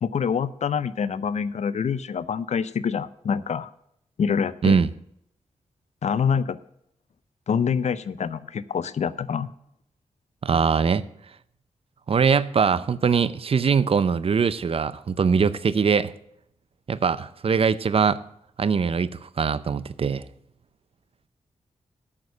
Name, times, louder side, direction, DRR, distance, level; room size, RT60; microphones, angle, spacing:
voice 1, 0.0-3.7 4.2-4.8 6.0-6.6 7.5-9.5, left 6 dB, 70° left, 0.6 m, -26 dB
voice 2, 10.4-11.0 12.1-16.1 16.9-18.2 18.6-20.2, right 6 dB, 50° right, 0.6 m, -22 dB
8.9 x 6.5 x 8.1 m
cardioid pair, 75°, 12 cm